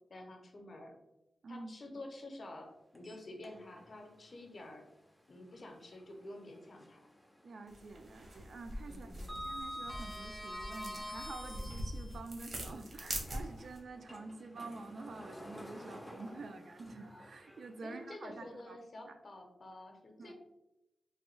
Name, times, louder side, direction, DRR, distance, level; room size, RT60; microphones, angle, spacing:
voice 1, 0.1-0.9 1.5-4.8 5.3-7.0 8.8-9.4 16.3-16.6 17.8-20.3, left 1 dB, 50° left, 3 dB, 0.6 m, -49 dB
Sliding door, 2.9-3.9 4.3-4.4 6.1-7.2 7.5-7.8 8.1-12.2 12.9-18.1, equal, 5° left, 0.4 m, -47 dB
voice 2, 7.4-18.8 19.1-19.2 20.2-20.3, right 3 dB, 70° right, 7 dB, 0.3 m, -48 dB
sound 1, 7.7-13.8, right 1 dB, 55° right, 0.8 m, -44 dB
3.4 x 2.2 x 3.1 m, 0.94 s
wide cardioid pair, 100°, 0 cm